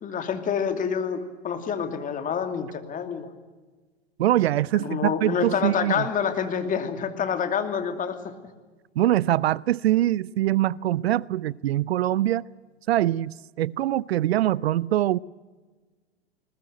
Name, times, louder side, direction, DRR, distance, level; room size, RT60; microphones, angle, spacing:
voice 1, 0.0-3.3 4.7-8.3, left 7 dB, 25° left, 2.7 m, -27 dB
voice 2, 4.2-6.0 9.0-12.4 12.9-15.2, right 13 dB, 70° right, 0.6 m, -23 dB
20.5 x 20.5 x 9.1 m
hypercardioid pair, 110°, 32 cm